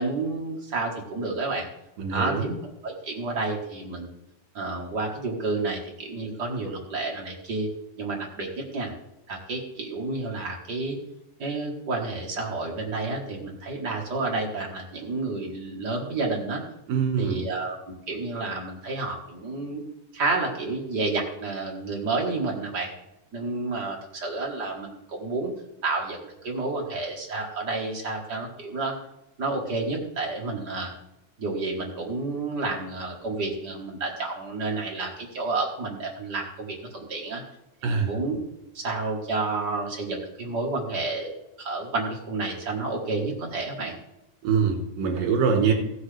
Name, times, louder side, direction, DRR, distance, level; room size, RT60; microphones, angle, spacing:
voice 1, 0.0-1.7 2.1-2.5 2.8-4.1 4.5-7.7 8.0-8.9 9.3-11.0 11.4-16.6 17.2-19.8 20.1-22.9 23.3-25.5 25.8-29.0 29.4-30.9 31.4-37.4 37.8-38.4 38.7-41.3 41.6-43.9, right 3 dB, 40° right, -1 dB, 1.7 m, -30 dB
voice 2, 2.0-2.5 16.9-17.4 37.8-38.1 44.4-45.7, right 6 dB, 85° right, 1 dB, 3.3 m, -24 dB
15.5 x 7.8 x 3.4 m, 0.88 s
omnidirectional pair, 3.8 m